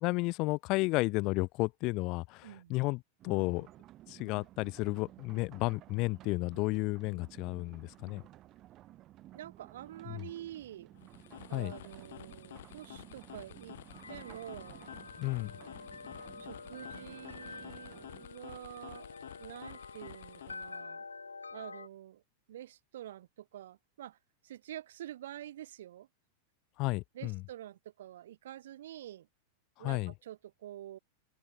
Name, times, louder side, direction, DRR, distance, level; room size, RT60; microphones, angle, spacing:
voice 1, 0.0-3.7 4.1-8.2 10.1-10.3 11.5-11.7 15.2-15.5 26.8-27.4 29.8-30.1, left 24 dB, 40° left, 0.7 m, -32 dB
voice 2, 2.4-2.7 9.3-10.9 11.5-13.8 14.1-14.9 16.4-21.0 21.5-22.2 22.5-24.2 24.4-26.1 27.1-29.3 29.8-31.0, right 12 dB, 60° right, 1.0 m, -47 dB
sound 1, 3.2-18.3, right 14 dB, 35° right, 1.6 m, -55 dB
sound 2, 10.9-20.9, left 13 dB, 60° left, 1.1 m, -51 dB
sound 3, 13.3-21.9, left 4 dB, 80° left, 2.9 m, -48 dB
figure-of-eight pair, 90°, 0 cm